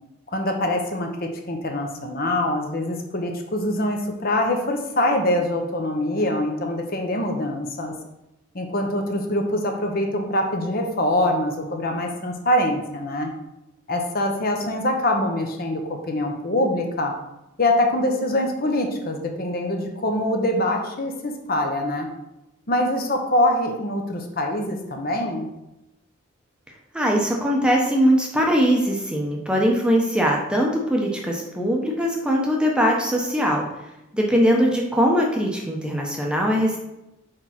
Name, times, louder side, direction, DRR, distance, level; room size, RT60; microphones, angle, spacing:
voice 1, 0.3-7.9 8.5-13.3 13.9-17.1 17.6-22.1 22.7-25.5, left 1 dB, 40° left, 3 dB, 0.8 m, -24 dB
voice 2, 26.9-33.7 34.1-36.8, equal, 5° right, -1 dB, 0.8 m, -21 dB
4.8 x 4.6 x 5.7 m, 0.92 s
head